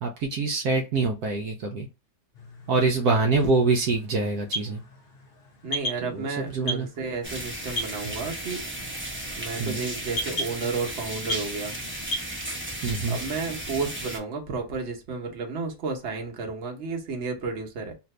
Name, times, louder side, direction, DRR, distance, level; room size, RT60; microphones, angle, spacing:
voice 1, 0.0-1.9 2.7-4.8 6.0-6.9 9.6-9.8 12.8-13.2, right 3 dB, 75° right, 1.0 m, -25 dB
sound 1, 2.3-12.3, equal, 60° left, 0.6 m, -37 dB
voice 2, 5.6-8.6 9.3-11.7 13.1-17.9, right 4 dB, 50° right, 1.0 m, -32 dB
sound 2, 7.2-14.2, right 1 dB, 15° right, 0.4 m, -35 dB
2.8 x 2.5 x 3.2 m
omnidirectional pair, 1.8 m